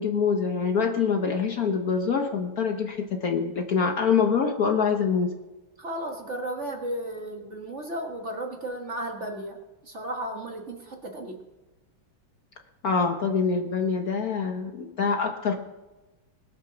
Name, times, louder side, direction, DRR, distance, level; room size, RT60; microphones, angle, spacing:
voice 1, 0.0-5.3 12.8-15.7, left 5 dB, 55° left, 4 dB, 1.3 m, -25 dB
voice 2, 5.8-9.6 9.8-11.4, right 1 dB, 35° right, 2 dB, 1.7 m, -34 dB
21.0 x 8.0 x 6.1 m, 1.1 s
omnidirectional pair, 2.2 m